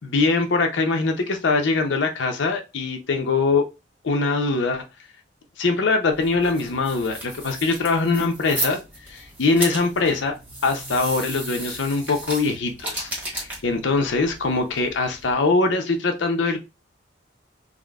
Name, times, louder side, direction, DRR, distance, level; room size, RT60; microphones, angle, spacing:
voice 1, 0.0-3.6 4.0-4.8 5.6-8.8 9.1-10.3 10.6-16.6, left 3 dB, 75° left, 0.6 m, -22 dB
sound 1, 6.1-15.3, right 1 dB, 10° right, 1.1 m, -34 dB
3.6 x 2.0 x 2.3 m
head